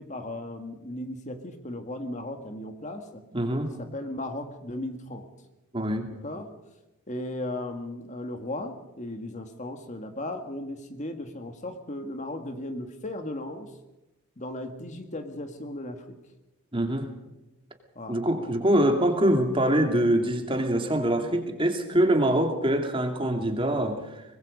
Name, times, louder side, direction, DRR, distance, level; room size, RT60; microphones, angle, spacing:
voice 1, 0.0-3.2 3.8-5.3 6.1-6.5 7.1-13.7 14.4-16.2 18.0-18.2, left 1 dB, 35° left, 6 dB, 1.8 m, -36 dB
voice 2, 3.3-3.7 5.7-6.1 16.7-17.1 18.1-24.2, right 1 dB, 25° right, 4 dB, 2.6 m, -24 dB
24.0 x 20.5 x 5.3 m, 0.98 s
head